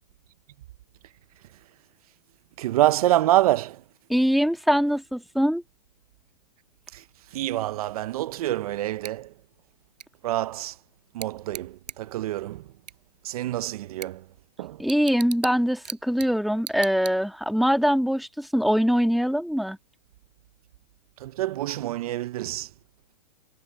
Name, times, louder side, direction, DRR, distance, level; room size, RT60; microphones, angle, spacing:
voice 1, 2.6-3.8 6.9-7.0 7.3-9.3 10.2-10.8 11.1-12.6 13.2-14.2 14.6-14.8 21.2-22.7, right 14 dB, 60° right, 0.8 m, -26 dB
voice 2, 4.1-5.6 14.8-19.8, equal, ahead, 1.9 m, -23 dB
Bicycle / Tick, 9.0-17.6, right 8 dB, 80° right, 7.9 m, -43 dB
hypercardioid pair, 125°, 21 cm